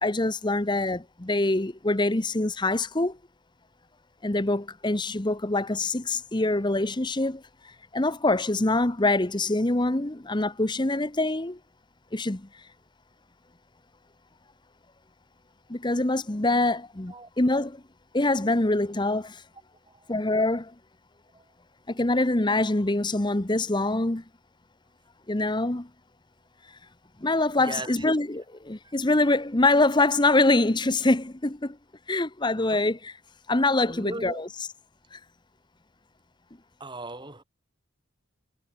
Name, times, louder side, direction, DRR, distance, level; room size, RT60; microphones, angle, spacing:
voice 1, 0.0-3.2 4.2-7.4 7.9-11.6 12.1-12.5 15.7-17.8 18.1-19.4 20.1-20.7 21.9-24.2 25.3-25.9 27.2-31.8 32.1-33.1 33.5-34.5 35.1-35.2, left 2 dB, 20° left, 0.9 m, -24 dB
voice 2, 27.6-28.1 28.8-28.9 32.6-32.8 33.8-34.4 36.8-37.4, right 2 dB, 20° right, 5.3 m, -39 dB
head